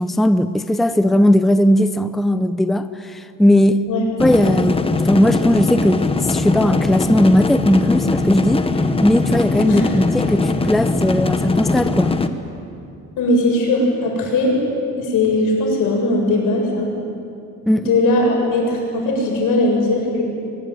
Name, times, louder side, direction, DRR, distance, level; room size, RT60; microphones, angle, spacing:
voice 1, 0.0-3.8 4.2-8.6 9.0-12.2 17.7-17.9, left 1 dB, ahead, 11 dB, 0.6 m, -17 dB
sound 1, 4.2-12.3, left 3 dB, 20° left, 1.1 m, -20 dB
voice 2, 13.2-14.6 15.0-16.9 17.7-20.2, left 2 dB, 85° left, 0 dB, 7.6 m, -19 dB
24.0 x 21.0 x 9.4 m, 2.6 s
cardioid pair, 155°, 31 cm